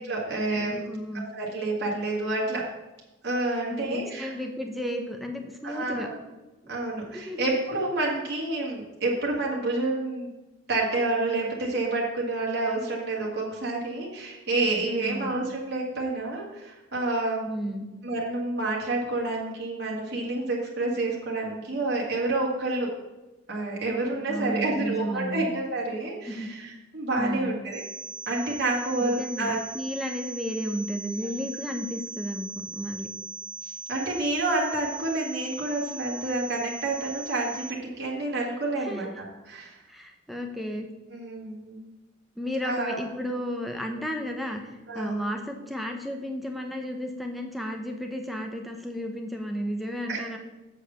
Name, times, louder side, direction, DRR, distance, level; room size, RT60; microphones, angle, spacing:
voice 1, 0.0-0.8 1.1-2.7 3.2-4.3 5.6-6.2 6.7-10.3 10.7-17.5 18.0-22.9 23.5-27.8 28.3-29.6 33.6-39.8 41.1-41.9 42.6-43.0 44.9-45.2 50.1-50.2, right 2 dB, 55° right, -4 dB, 2.0 m, -29 dB
voice 2, 0.6-1.3 3.7-6.1 6.6-6.7 7.1-7.5 15.0-15.4 17.5-17.9 24.3-25.5 26.3-26.5 27.2-27.6 29.0-33.1 38.8-39.1 39.9-40.9 42.4-50.4, equal, ahead, 2 dB, 0.8 m, -33 dB
sound 1, 27.7-37.7, right 2 dB, 20° right, 0.4 m, -39 dB
7.5 x 4.9 x 7.0 m, 1.1 s
head